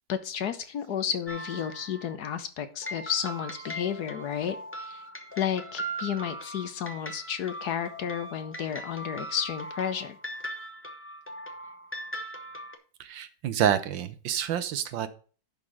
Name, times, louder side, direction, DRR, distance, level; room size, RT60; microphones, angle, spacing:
voice 1, 0.1-5.0 5.4-10.2, left 8 dB, 65° left, 10 dB, 1.3 m, -32 dB
sound 1, 1.3-2.2 2.8-12.8, right 1 dB, 10° left, 0.8 m, -39 dB
voice 2, 13.0-15.1, right 9 dB, 85° right, 12 dB, 1.6 m, -28 dB
11.0 x 3.9 x 6.2 m, 0.39 s
omnidirectional pair, 2.0 m